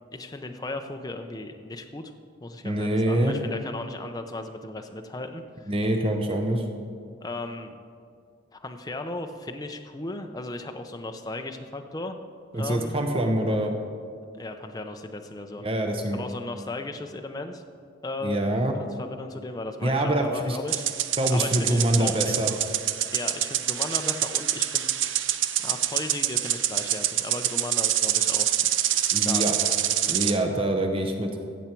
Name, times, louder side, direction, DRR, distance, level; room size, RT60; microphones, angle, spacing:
voice 1, 0.1-2.1 2.4-5.7 7.2-7.8 8.5-12.2 12.5-13.1 14.4-15.7 16.1-17.6 18.0-18.4 18.7-20.9 21.3-22.6 23.1-24.9 25.6-28.6 29.2-29.8, left 2 dB, 20° left, 5 dB, 0.5 m, -36 dB
voice 2, 2.6-3.4 5.7-6.6 12.5-13.7 15.6-16.2 18.2-18.7 19.8-20.6 21.2-22.5 29.1-29.5 30.1-31.3, right 1 dB, 30° right, 4 dB, 0.8 m, -25 dB
sound 1, 20.7-30.4, right 11 dB, 70° right, 0.5 m, -26 dB
15.5 x 7.2 x 4.5 m, 2.2 s
head